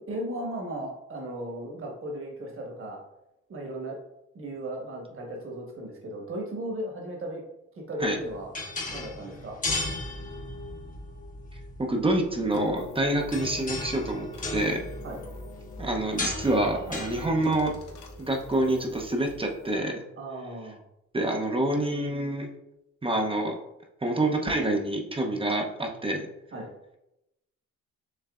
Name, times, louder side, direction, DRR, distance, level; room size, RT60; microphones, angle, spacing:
voice 1, 0.0-3.0 3.5-4.0 4.3-7.4 7.8-8.5 8.9-9.6 15.0-15.2 20.2-20.8 26.5-26.7, right 1 dB, 45° right, 0 dB, 1.5 m, -36 dB
sound 1, 8.0-19.4, left 2 dB, 25° left, 1.0 m, -37 dB
voice 2, 11.8-14.8 15.8-17.7 18.2-20.0 21.1-22.5 23.0-23.6 24.0-26.3, right 1 dB, 20° right, 2 dB, 0.7 m, -27 dB
sound 2, 12.5-19.8, left 2 dB, 85° left, 1.0 m, -44 dB
6.5 x 3.2 x 2.4 m, 0.87 s
cardioid pair, 90°, 30 cm